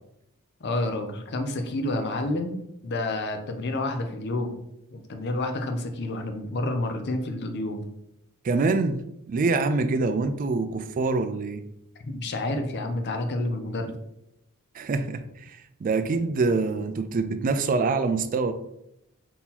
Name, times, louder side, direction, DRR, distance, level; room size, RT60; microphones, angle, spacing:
voice 1, 0.6-4.6 4.9-7.8 12.0-14.0, left 2 dB, 50° left, 6 dB, 0.6 m, -29 dB
voice 2, 8.4-9.0 9.3-11.6 14.7-18.5, right 3 dB, 40° right, 9 dB, 0.3 m, -25 dB
3.9 x 2.9 x 4.0 m, 0.80 s
head